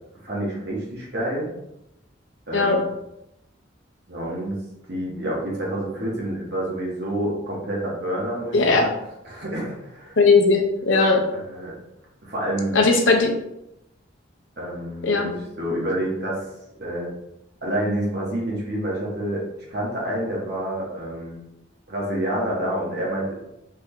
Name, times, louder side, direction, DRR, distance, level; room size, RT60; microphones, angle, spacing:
voice 1, 0.2-1.5 2.5-2.9 4.1-4.5 4.9-8.9 9.2-10.2 11.4-11.8 12.2-12.8 14.6-16.5 16.8-17.1 17.6-19.4 19.7-21.4 21.9-23.4, right 1 dB, 55° right, -4 dB, 1.2 m, -28 dB
voice 2, 2.5-2.8 8.5-8.9 10.2-11.2 12.7-13.3 15.0-15.3, left 3 dB, 85° left, 2 dB, 0.6 m, -18 dB
3.7 x 3.3 x 2.2 m, 0.86 s
head